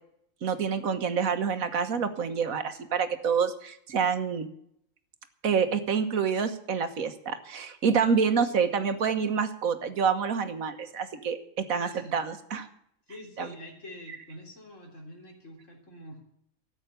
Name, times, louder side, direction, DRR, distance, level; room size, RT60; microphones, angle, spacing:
voice 1, 0.4-4.5 5.4-12.7 13.4-13.5, right 6 dB, 80° right, 9 dB, 1.6 m, -27 dB
voice 2, 11.7-12.2 13.1-16.2, left 1 dB, 60° left, 1 dB, 3.8 m, -46 dB
13.5 x 8.9 x 8.1 m, 0.70 s
omnidirectional pair, 1.4 m